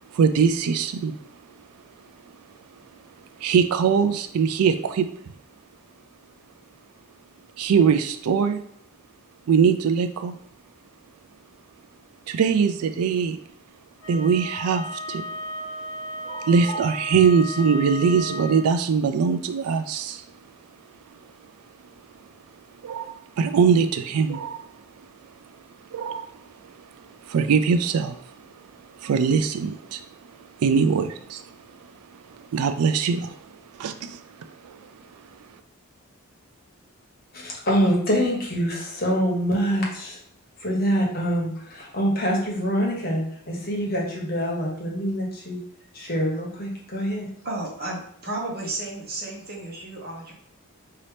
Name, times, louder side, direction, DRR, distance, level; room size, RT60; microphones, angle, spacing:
voice 1, 0.1-1.2 3.4-5.1 7.6-8.6 9.5-10.3 12.3-13.4 14.1-15.2 16.2-20.2 22.8-24.7 25.9-26.3 27.2-28.5 29.0-30.0 30.6-31.5 32.3-33.4 33.8-34.2 34.6-34.9, right 6 dB, 85° right, 10 dB, 0.4 m, -22 dB
Wind instrument woodwind instrument, 14.0-18.7, left 1 dB, 75° left, 0.9 m, -35 dB
voice 2, 37.3-40.2 40.6-45.6 45.9-47.3, equal, 45° left, -2 dB, 1.2 m, -25 dB
voice 3, 47.4-50.3, right 2 dB, 45° right, -2 dB, 1.2 m, -33 dB
5.0 x 2.8 x 3.3 m, 0.67 s
head